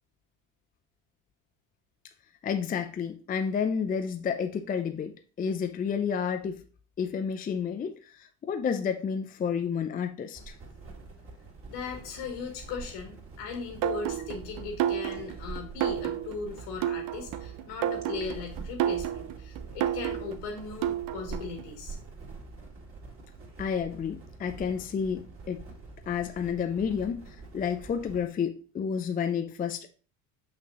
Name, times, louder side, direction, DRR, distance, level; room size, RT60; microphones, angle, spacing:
voice 1, 2.4-6.6 7.0-10.5 23.6-25.6 26.1-29.9, left 7 dB, 20° left, 0.5 m, -30 dB
sound 1, 10.3-28.3, right 3 dB, 30° right, 2.5 m, -46 dB
voice 2, 11.7-22.0, left 5 dB, 75° left, 2.3 m, -38 dB
sound 2, 13.8-21.6, right 11 dB, 55° right, 0.8 m, -31 dB
5.8 x 5.8 x 3.0 m
supercardioid pair, 105°, 42 cm